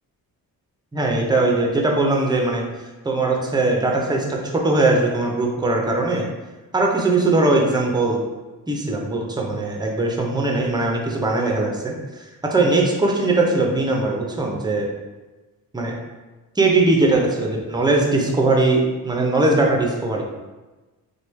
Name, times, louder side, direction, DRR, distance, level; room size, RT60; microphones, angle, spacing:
voice 1, 0.9-2.6 3.0-6.2 6.7-8.2 8.7-14.9 15.7-15.9 16.6-20.2, right 2 dB, 10° right, 0 dB, 0.5 m, -20 dB
3.0 x 2.2 x 3.2 m, 1.2 s
cardioid pair, 100°, 36 cm